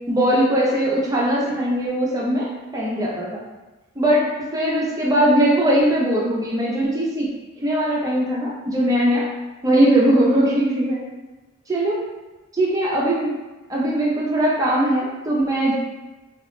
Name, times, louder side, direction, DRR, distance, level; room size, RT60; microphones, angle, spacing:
voice 1, 0.1-3.4 4.0-7.3 7.6-9.2 9.6-11.0 11.7-12.0 12.5-13.3 13.7-15.7, right 1 dB, 15° right, -5 dB, 0.4 m, -20 dB
2.4 x 2.0 x 3.0 m, 1.2 s
head